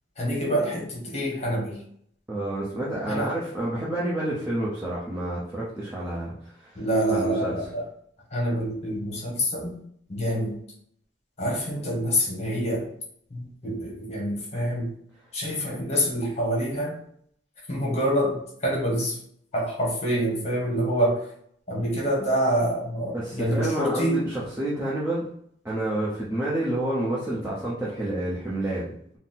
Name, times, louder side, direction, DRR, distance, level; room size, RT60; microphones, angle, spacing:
voice 1, 0.2-1.8 3.1-3.3 6.7-7.8 8.3-9.8 10.1-10.5 11.4-12.9 13.3-14.9 15.3-17.0 17.7-19.2 19.5-21.2 21.7-24.2, equal, 35° left, -2 dB, 1.1 m, -26 dB
voice 2, 2.3-6.8 7.1-7.6 23.1-25.3 25.6-29.2, right 1 dB, 15° right, -8 dB, 0.7 m, -29 dB
3.9 x 2.0 x 4.1 m, 0.66 s
head